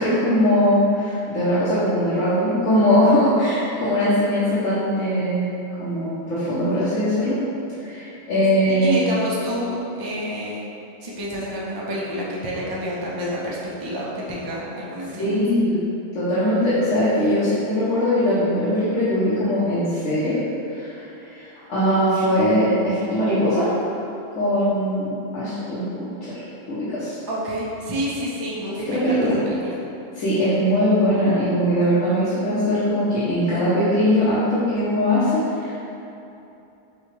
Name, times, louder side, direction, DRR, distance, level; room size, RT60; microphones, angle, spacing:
voice 1, 0.0-5.5 5.8-7.4 7.8-8.9 15.2-15.8 16.1-20.4 20.7-21.0 21.3-23.7 24.4-26.4 26.7-27.2 28.8-29.4 30.1-35.9, equal, 70° left, -12 dB, 1.3 m, -21 dB
voice 2, 8.6-10.7 11.0-15.4 27.3-29.8, equal, 30° right, -6 dB, 0.4 m, -28 dB
6.5 x 2.4 x 3.2 m, 2.8 s
omnidirectional pair, 1.4 m